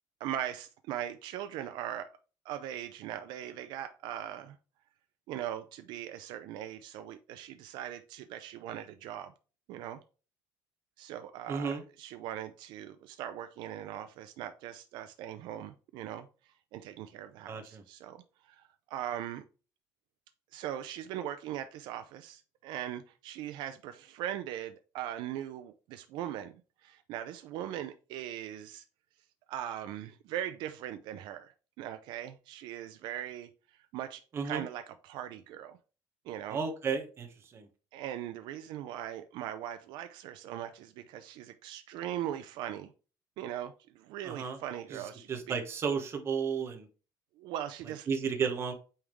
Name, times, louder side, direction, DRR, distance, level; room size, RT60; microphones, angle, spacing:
voice 1, 0.2-2.1 2.4-4.6 5.3-9.3 9.7-10.0 11.0-16.3 16.7-19.4 20.5-28.8 29.5-33.5 33.9-35.8 36.2-36.6 37.9-42.9 43.4-45.6 47.4-48.1, right 11 dB, 75° right, 9 dB, 0.6 m, -40 dB
voice 2, 11.5-11.8 17.5-17.8 34.3-34.6 36.5-37.3 37.5-37.7 44.2-44.6 44.9-45.0 45.3-46.9 48.1-48.7, right 6 dB, 35° right, 6 dB, 1.3 m, -33 dB
8.7 x 3.6 x 3.2 m, 0.34 s
cardioid pair, 160°, 8 cm